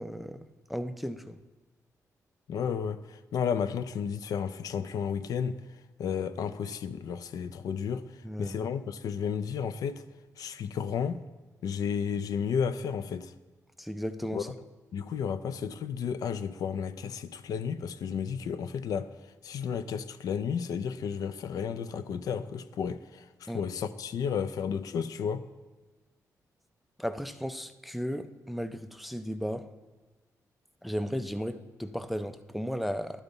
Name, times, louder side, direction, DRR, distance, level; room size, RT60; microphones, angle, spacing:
voice 1, 0.0-1.4 8.2-8.6 13.8-14.5 23.5-23.6 27.0-29.7 30.8-33.2, equal, ahead, 0.3 m, -35 dB
voice 2, 2.5-5.6 6.0-8.1 8.4-10.0 10.4-11.2 11.6-13.3 14.3-14.4 14.9-19.1 19.4-25.4, left 7 dB, 75° left, 0.4 m, -32 dB
11.5 x 4.0 x 5.3 m
wide cardioid pair, 140°, 6 cm